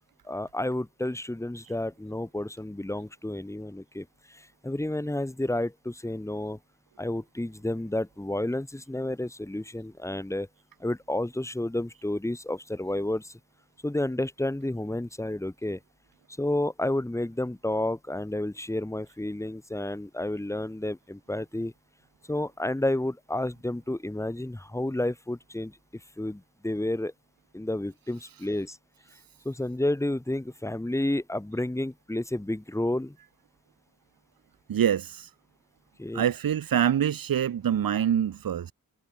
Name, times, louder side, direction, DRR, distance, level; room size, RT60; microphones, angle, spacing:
voice 1, 0.2-6.6 7.0-10.5 10.8-13.4 13.8-15.8 16.4-21.7 22.3-25.8 26.2-27.1 27.5-28.8 29.4-33.2 36.0-36.2, left 1 dB, 10° left, 2.1 m, -31 dB
voice 2, 34.7-35.3 36.1-38.7, right 9 dB, 85° right, 3.8 m, -25 dB
cardioid pair, 70°, 34 cm